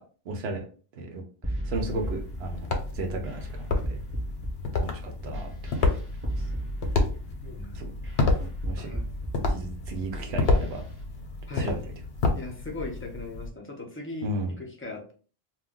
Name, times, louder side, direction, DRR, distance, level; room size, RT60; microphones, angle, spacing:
voice 1, 0.3-0.6 1.0-1.2 1.7-4.0 4.7-5.5 7.8-7.9 8.4-8.9 9.5-10.8 11.5-11.9 14.2-14.5, right 2 dB, 85° right, 3 dB, 0.9 m, -34 dB
sound 1, 1.4-11.0, right 1 dB, 15° right, 0.8 m, -35 dB
sound 2, 1.7-13.5, left 3 dB, 75° left, 0.9 m, -30 dB
voice 2, 7.2-7.8 8.8-9.1 11.5-11.8 12.3-14.3 14.6-15.1, left 3 dB, 15° left, 0 dB, 0.6 m, -39 dB
2.3 x 2.2 x 3.6 m, 0.39 s
omnidirectional pair, 1.0 m